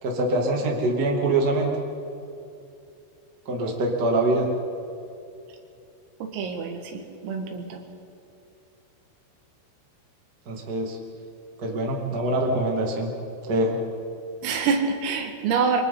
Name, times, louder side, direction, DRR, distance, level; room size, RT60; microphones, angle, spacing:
voice 1, 0.0-1.7 3.5-4.5 10.5-11.0 11.6-13.1 13.5-13.8, right 2 dB, 30° right, -1 dB, 1.7 m, -24 dB
voice 2, 6.2-7.8 14.4-15.8, right 5 dB, 90° right, 4 dB, 4.4 m, -26 dB
28.0 x 24.0 x 3.9 m, 2.6 s
omnidirectional pair, 5.8 m